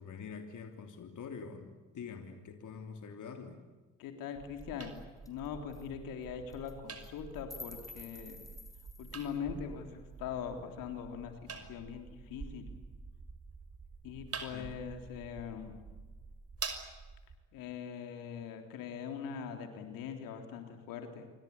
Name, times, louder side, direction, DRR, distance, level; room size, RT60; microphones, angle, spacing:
voice 1, 0.0-3.6 14.5-14.8, left 6 dB, 60° left, 5 dB, 3.2 m, -45 dB
voice 2, 4.0-5.0 5.3-8.4 9.0-12.6 14.0-15.8 17.5-21.3, left 7 dB, 75° left, 5 dB, 3.5 m, -42 dB
sound 1, 4.4-17.4, right 4 dB, 45° right, 5.9 m, -47 dB
sound 2, 4.6-4.7 5.0-5.1 5.3-5.5 5.7-5.9 6.5-6.7 7.0-9.4, left 2 dB, 10° left, 6.4 m, -50 dB
28.0 x 23.5 x 8.4 m, 1.2 s
hypercardioid pair, 45°, 34 cm